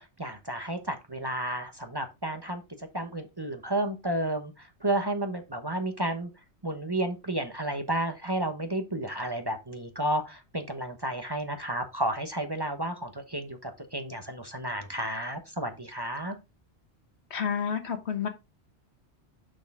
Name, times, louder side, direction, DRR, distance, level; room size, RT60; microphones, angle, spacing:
voice 1, 0.0-6.3 6.6-16.4, right 1 dB, 25° right, 1.0 m, -32 dB
voice 2, 17.3-18.3, left 7 dB, 75° left, 1.3 m, -30 dB
6.5 x 6.2 x 3.5 m
omnidirectional pair, 1.2 m